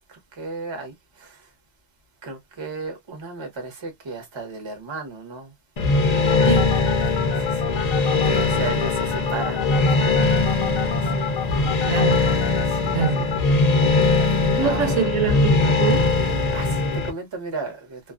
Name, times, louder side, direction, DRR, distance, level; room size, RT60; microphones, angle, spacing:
voice 1, 0.1-1.5 2.2-5.5 5.9-6.5 7.4-7.8 8.2-11.1 12.7-13.3 14.1-15.0 16.5-18.0, right 3 dB, 25° right, 0.7 m, -35 dB
sound 1, 5.8-17.1, left 3 dB, 50° left, 0.5 m, -21 dB
sound 2, 6.3-13.4, left 10 dB, 70° left, 0.9 m, -31 dB
voice 2, 6.5-6.8 8.3-8.8 11.8-12.2 12.9-13.3 14.4-16.1, right 6 dB, 75° right, 0.9 m, -25 dB
2.4 x 2.2 x 2.4 m
omnidirectional pair, 1.3 m